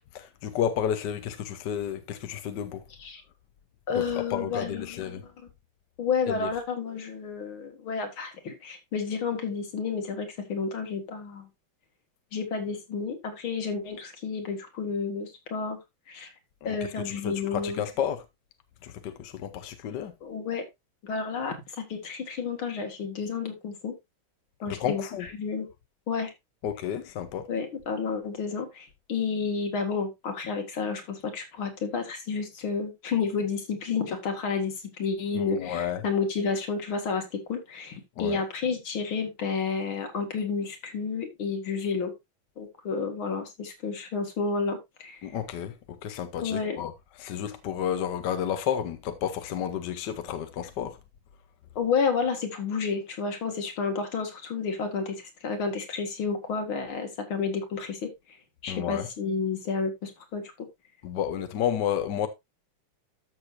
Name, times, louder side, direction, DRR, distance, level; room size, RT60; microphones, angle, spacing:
voice 1, 0.4-2.8 3.9-5.2 6.3-6.5 16.6-18.2 18.8-20.1 24.7-25.3 26.6-27.5 35.3-36.0 38.2-38.4 45.2-46.9 47.2-51.0 58.7-59.1 61.0-62.3, left 9 dB, 65° left, 1.4 m, -31 dB
voice 2, 3.9-5.3 6.0-11.5 12.3-15.8 16.1-16.3 16.6-17.8 20.2-20.6 21.0-23.9 24.6-25.0 25.4-25.7 26.1-26.3 27.5-42.1 42.6-45.2 46.4-46.8 51.8-55.2 55.4-58.1 58.6-60.4, left 5 dB, 85° left, 2.8 m, -30 dB
13.0 x 6.4 x 2.6 m
omnidirectional pair, 2.2 m